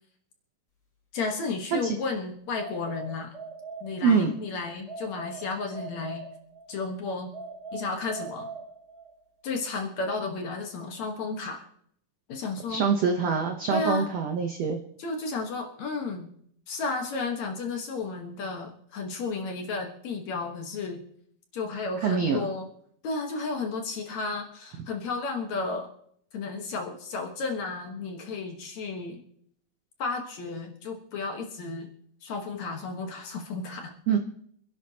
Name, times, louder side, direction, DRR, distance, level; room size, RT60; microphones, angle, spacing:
voice 1, 1.1-3.4 3.8-6.3 6.7-7.3 7.7-8.5 9.4-11.7 12.3-12.9 13.7-14.1 15.0-16.3 16.7-21.0 21.5-22.7 23.0-25.9 26.3-29.2 30.0-31.9 32.2-33.9, left 3 dB, 60° left, 2 dB, 2.3 m, -33 dB
sound 1, 2.6-4.4 4.9-6.8 7.3-9.2, right 4 dB, 10° left, 3.8 m, -41 dB
voice 2, 4.0-4.4 12.7-14.8 22.0-22.5 34.1-34.2, right 5 dB, 70° right, 4 dB, 1.5 m, -25 dB
26.0 x 11.5 x 2.9 m, 0.66 s
omnidirectional pair, 4.3 m